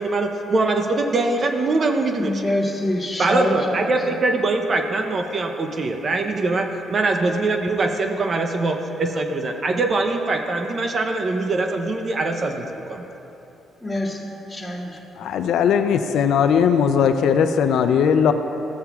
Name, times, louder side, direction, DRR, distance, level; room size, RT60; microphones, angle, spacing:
voice 1, 0.0-2.3 3.2-13.1, right 3 dB, 45° right, 4 dB, 0.6 m, -23 dB
voice 2, 2.2-3.9 13.8-14.2 14.5-15.0, left 1 dB, 10° left, -7 dB, 2.0 m, -25 dB
voice 3, 15.2-18.3, left 7 dB, 80° left, 8 dB, 0.4 m, -18 dB
13.5 x 8.4 x 2.3 m, 3.0 s
cardioid pair, 90°, 0 cm